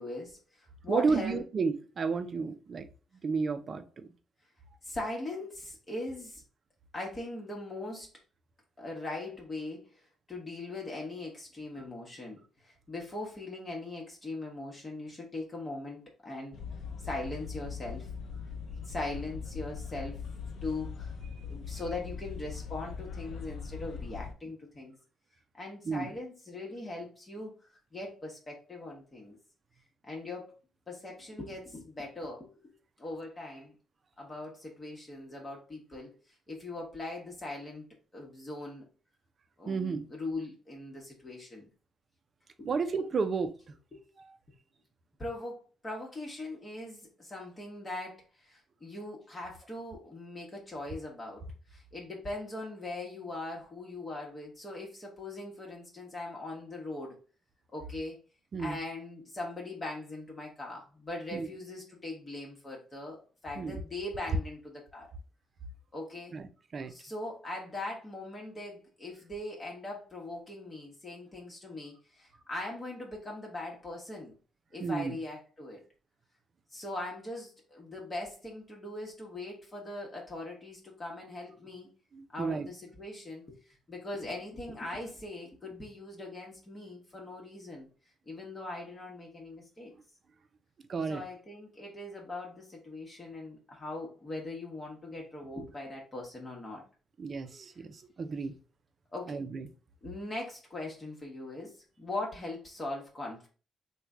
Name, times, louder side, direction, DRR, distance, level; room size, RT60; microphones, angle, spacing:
voice 1, 0.0-1.4 4.8-6.4 6.9-8.1 8.8-16.6 17.0-18.1 18.8-20.2 20.6-21.1 21.4-25.0 25.6-27.5 27.9-29.4 30.1-30.5 30.9-32.6 33.0-33.7 34.2-36.1 36.5-37.8 38.1-38.8 39.6-41.7 42.6-42.7 43.9-44.0 45.2-51.4 51.7-57.2 57.7-58.2 58.6-65.1 65.9-66.4 66.9-74.3 74.7-75.8 76.7-81.9 82.3-83.6 83.9-87.9 88.3-89.9 91.1-96.8 99.1-99.4 100.0-103.5, left 2 dB, 30° left, 1.0 m, -40 dB
voice 2, 0.9-2.9 3.2-4.1 25.8-26.1 39.7-40.0 42.6-43.7 44.2-44.4 58.5-58.8 61.3-61.5 63.6-63.8 66.3-66.9 74.8-75.2 82.1-82.7 90.9-91.2 97.2-98.5 99.3-99.7, right 5 dB, 45° right, 0.4 m, -32 dB
sound 1, 16.5-24.3, left 5 dB, 65° left, 0.5 m, -41 dB
3.1 x 2.2 x 3.6 m
cardioid pair, 90°, 0 cm